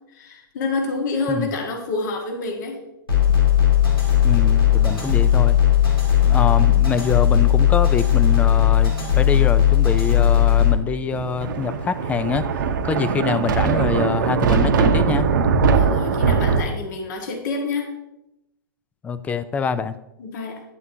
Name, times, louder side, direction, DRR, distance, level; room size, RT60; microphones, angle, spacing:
voice 1, 0.1-2.8 4.7-4.9 15.7-18.0 20.2-20.6, left 3 dB, 55° left, 2 dB, 1.7 m, -28 dB
sound 1, 3.1-10.7, left 10 dB, 90° left, 2.4 m, -17 dB
voice 2, 4.2-5.6 6.2-12.5 12.8-15.3 19.0-20.0, left 5 dB, 10° left, 13 dB, 0.3 m, -25 dB
Thunder, 11.1-16.6, right 5 dB, 60° right, 0.9 m, -20 dB
9.4 x 8.2 x 2.8 m, 0.90 s
hypercardioid pair, 120°, 12 cm